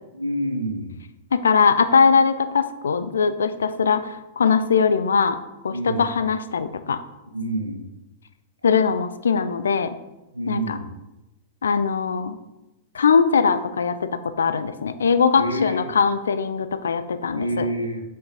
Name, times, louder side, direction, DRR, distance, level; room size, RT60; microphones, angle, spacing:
voice 1, 0.1-1.0 5.7-6.1 7.3-7.9 10.3-10.9 15.4-15.9 17.3-18.0, right 1 dB, 90° right, 3 dB, 1.2 m, -27 dB
voice 2, 1.3-5.4 5.6-7.0 8.6-9.9 10.5-10.8 11.6-12.4 12.9-17.7, left 5 dB, 70° left, 12 dB, 0.6 m, -21 dB
7.7 x 5.8 x 4.1 m, 0.99 s
figure-of-eight pair, 95°, 0 cm